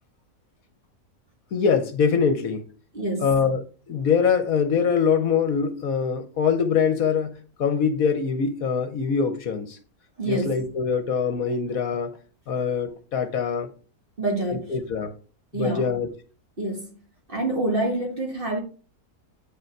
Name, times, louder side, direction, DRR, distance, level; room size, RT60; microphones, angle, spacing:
voice 1, 1.5-2.6 3.2-9.8 10.3-12.1 12.5-13.7 14.7-15.1 15.5-16.1, left 6 dB, 65° left, 1.2 m, -23 dB
voice 2, 2.9-3.3 10.2-10.6 14.2-14.8 15.5-15.9 16.6-17.0 17.3-18.6, right 2 dB, 35° right, 2.1 m, -27 dB
8.8 x 5.2 x 4.6 m
omnidirectional pair, 1.7 m